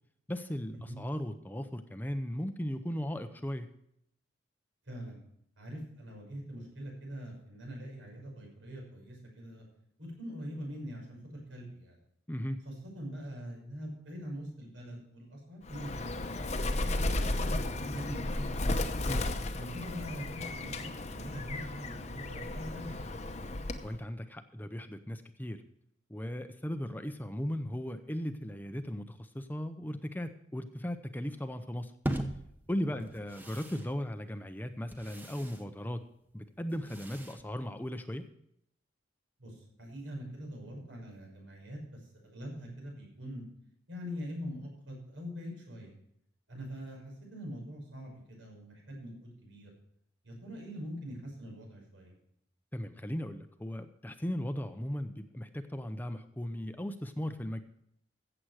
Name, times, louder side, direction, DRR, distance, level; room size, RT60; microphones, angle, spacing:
voice 1, 0.3-3.7 12.3-12.6 19.1-19.3 23.8-25.6 26.1-31.9 32.7-36.0 36.3-38.2 52.7-57.6, equal, 10° left, 9 dB, 0.6 m, -37 dB
voice 2, 4.8-5.2 5.6-9.7 10.0-12.0 12.6-16.3 16.7-18.8 19.6-23.2 32.9-33.0 39.4-43.5 43.9-46.0 46.5-49.7 50.2-52.1, equal, 85° right, 0 dB, 5.9 m, -43 dB
Bird, 15.7-23.9, left 2 dB, 35° left, 0.8 m, -34 dB
sound 1, 32.0-38.3, right 1 dB, 10° right, 0.9 m, -42 dB
15.0 x 7.9 x 4.8 m, 0.73 s
head